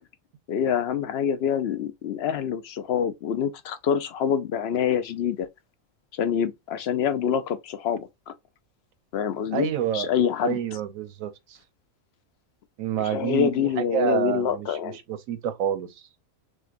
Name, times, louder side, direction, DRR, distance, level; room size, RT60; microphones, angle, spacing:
voice 1, 0.5-5.5 6.1-8.3 9.1-10.6 13.0-15.0, left 8 dB, 65° left, 0.7 m, -26 dB
voice 2, 9.5-10.1 10.4-11.6 12.8-15.9, right 10 dB, 80° right, 1.1 m, -28 dB
6.4 x 2.3 x 2.5 m
omnidirectional pair, 1.4 m